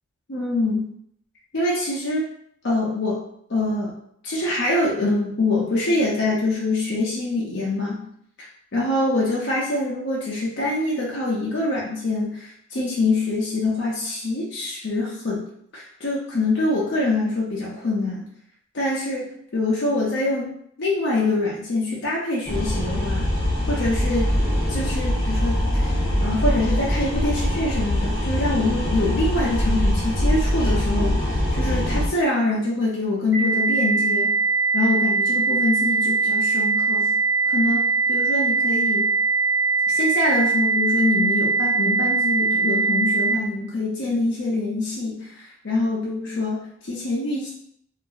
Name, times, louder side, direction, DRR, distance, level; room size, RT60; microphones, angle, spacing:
voice 1, 0.3-0.9 1.5-2.3 2.6-3.2 3.5-3.9 4.2-8.1 8.7-15.4 15.7-18.3 18.7-20.5 20.8-23.3 23.7-24.3 24.7-25.9 26.2-34.3 34.7-37.1 37.5-39.1 39.9-47.5, left 2 dB, 55° left, -5 dB, 0.6 m, -25 dB
sound 1, 22.5-32.1, left 1 dB, 30° left, 0.8 m, -23 dB
sound 2, 33.3-43.3, right 4 dB, 10° right, 0.5 m, -21 dB
2.5 x 2.0 x 3.8 m, 0.67 s
head